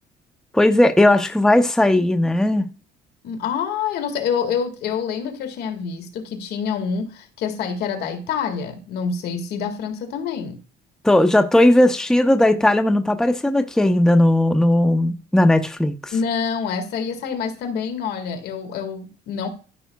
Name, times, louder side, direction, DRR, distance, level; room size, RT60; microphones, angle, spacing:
voice 1, 0.5-2.7 11.0-16.1, left 1 dB, 5° left, 0.6 m, -17 dB
voice 2, 3.2-10.6 16.1-19.5, left 6 dB, 75° left, 1.8 m, -27 dB
14.0 x 5.7 x 2.3 m
cardioid pair, 110°, 17 cm